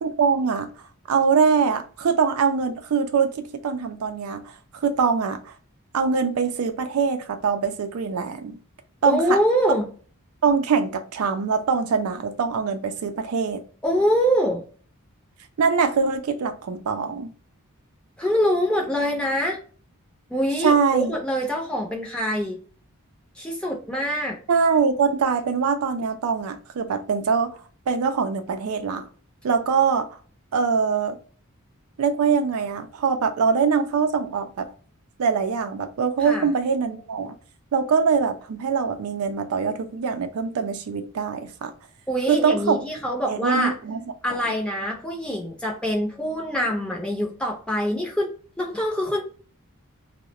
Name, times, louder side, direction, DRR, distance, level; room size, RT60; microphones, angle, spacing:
voice 1, 0.0-0.7 1.1-4.4 4.8-5.4 5.9-8.6 9.0-9.4 10.4-13.6 15.6-17.3 20.6-21.2 24.5-27.6 27.9-29.0 29.4-30.1 30.5-31.2 32.0-34.7 35.2-37.3 37.7-41.7 42.3-42.8 43.2-44.0 44.4-44.5, right 5 dB, 80° right, 0.4 m, -23 dB
voice 2, 9.0-9.9 13.8-14.6 18.2-19.6 20.3-22.6 23.4-24.4 36.2-36.5 42.1-43.7 44.2-48.3 48.6-49.2, equal, 5° left, 0.6 m, -24 dB
2.3 x 2.1 x 2.8 m
head